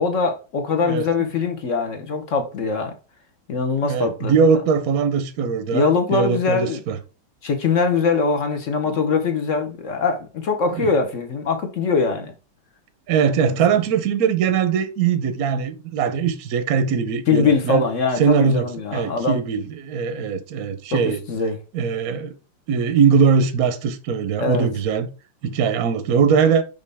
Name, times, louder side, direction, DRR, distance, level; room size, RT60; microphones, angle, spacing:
voice 1, 0.0-2.9 3.5-4.3 5.7-6.8 7.4-12.3 17.3-19.4 20.9-21.0 21.3-21.6 24.4-24.7, left 4 dB, 50° left, 1.0 m, -22 dB
voice 2, 0.8-1.3 3.8-7.0 8.9-9.0 13.1-17.8 18.2-21.2 21.7-22.3 22.7-25.1 25.4-26.6, right 6 dB, 60° right, 1.0 m, -21 dB
5.5 x 5.3 x 3.4 m
omnidirectional pair, 2.1 m